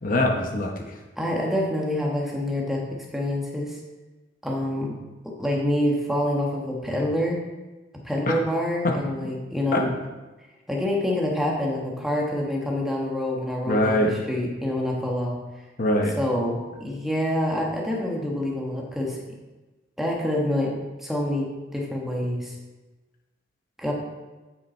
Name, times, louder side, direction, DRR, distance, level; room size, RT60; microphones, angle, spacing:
voice 1, 0.0-1.0 8.3-8.4 8.8-9.0 9.7-9.8 13.7-14.1 15.8-16.2, left 1 dB, 45° left, 2 dB, 0.9 m, -23 dB
voice 2, 1.2-2.9 3.1-3.8 4.4-5.0 5.4-7.4 8.0-10.0 10.7-15.4 16.2-19.2 20.0-20.7 21.0-22.5 23.8-23.9, left 1 dB, ahead, -2 dB, 1.3 m, -26 dB
8.8 x 5.8 x 4.4 m, 1.2 s
head